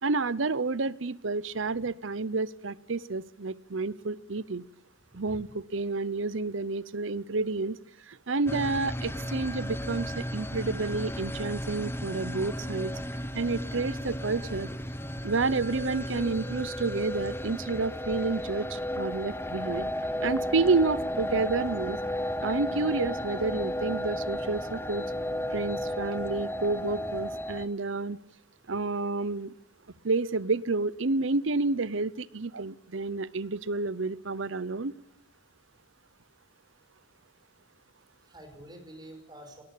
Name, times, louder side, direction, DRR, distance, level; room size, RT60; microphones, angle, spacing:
voice 1, 0.0-4.6 5.1-7.8 8.1-12.9 13.3-14.7 15.2-19.9 20.2-22.0 22.4-25.1 25.5-28.2 28.7-29.5 30.0-34.9, right 3 dB, 70° right, 18 dB, 0.8 m, -30 dB
sound 1, 8.5-27.7, equal, 10° left, 1.0 m, -34 dB
voice 2, 38.3-39.6, equal, 20° right, 6 dB, 5.4 m, -48 dB
20.5 x 18.5 x 8.5 m, 0.76 s
head